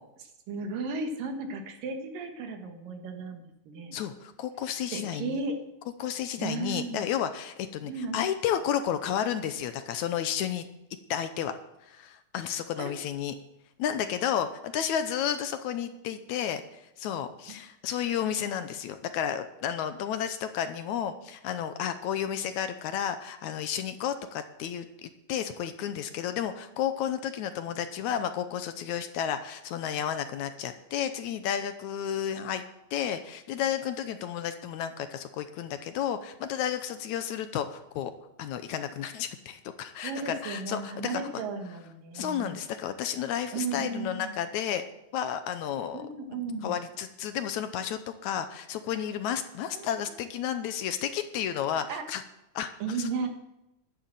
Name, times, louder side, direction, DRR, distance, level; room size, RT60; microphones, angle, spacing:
voice 1, 0.5-4.0 4.9-5.6 6.4-7.0 7.9-8.2 12.8-12.9 17.5-17.6 40.0-42.6 43.5-44.3 45.9-46.7 49.7-50.1 51.9-52.1 52.8-53.3, right 4 dB, 90° right, 5 dB, 3.3 m, -35 dB
voice 2, 3.9-5.4 6.0-10.7 11.1-11.5 11.9-13.3 13.8-16.6 17.0-32.6 32.9-38.1 38.4-41.4 42.1-44.8 45.1-46.0 46.6-52.2 52.6-52.7 53.0-53.1, left 9 dB, 75° left, 9 dB, 2.0 m, -32 dB
11.5 x 9.9 x 7.6 m, 0.88 s
omnidirectional pair, 3.8 m